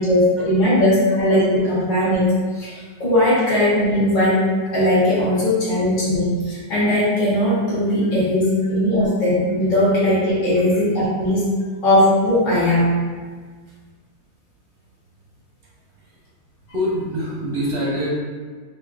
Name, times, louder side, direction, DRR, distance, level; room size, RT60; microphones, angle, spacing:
voice 1, 0.0-2.3 2.5-4.4 4.7-11.4 11.8-12.9, left 1 dB, 35° left, -10 dB, 1.0 m, -18 dB
voice 2, 16.7-18.1, equal, 45° right, -7 dB, 0.8 m, -24 dB
3.4 x 2.6 x 2.4 m, 1.5 s
omnidirectional pair, 1.7 m